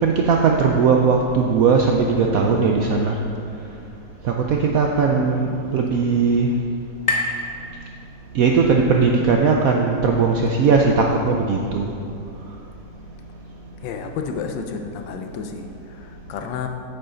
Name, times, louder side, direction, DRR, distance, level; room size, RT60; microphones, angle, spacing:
voice 1, 0.0-3.2 4.2-6.5 8.3-11.9, right 5 dB, 65° right, 1 dB, 0.9 m, -18 dB
sound 1, 4.7-8.5, left 2 dB, 45° left, 0.6 m, -31 dB
voice 2, 5.1-5.7 13.8-16.7, left 6 dB, 85° left, 5 dB, 1.4 m, -32 dB
8.9 x 8.0 x 3.8 m, 2.5 s
omnidirectional pair, 1.9 m